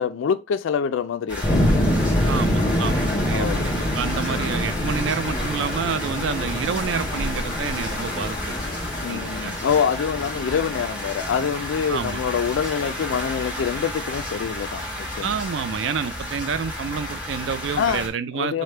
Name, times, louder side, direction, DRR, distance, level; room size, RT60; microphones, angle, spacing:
voice 1, 0.0-1.6 3.3-3.6 9.0-15.3 17.8-18.0 18.3-18.6, left 7 dB, 75° left, 0.3 m, -25 dB
sound 1, 1.3-18.1, left 1 dB, 5° right, 1.2 m, -32 dB
sound 2, 1.4-12.2, equal, 25° left, 0.6 m, -26 dB
voice 2, 2.2-8.6 9.1-9.5 11.9-12.2 15.2-18.6, right 6 dB, 65° right, 0.4 m, -28 dB
sound 3, 4.1-9.1, left 2 dB, 55° left, 1.2 m, -34 dB
4.9 x 2.1 x 4.3 m
head